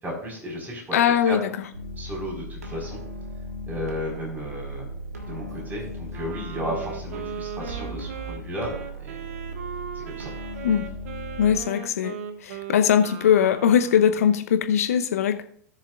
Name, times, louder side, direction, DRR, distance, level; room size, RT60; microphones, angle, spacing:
voice 1, 0.0-1.0 1.2-1.4 2.0-3.0 3.7-4.9 5.2-9.2 9.9-10.3, equal, 20° right, -1 dB, 4.5 m, -34 dB
voice 2, 0.9-1.5 10.6-10.9 11.4-12.1 12.4-15.4, left 8 dB, 70° left, 8 dB, 0.9 m, -20 dB
sound 1, 1.7-11.6, equal, 80° right, 1.6 m, -37 dB
Wind instrument woodwind instrument, 6.1-14.3, right 7 dB, 65° right, 1.0 m, -38 dB
18.0 x 6.7 x 2.5 m, 0.64 s
figure-of-eight pair, 90°, 8 cm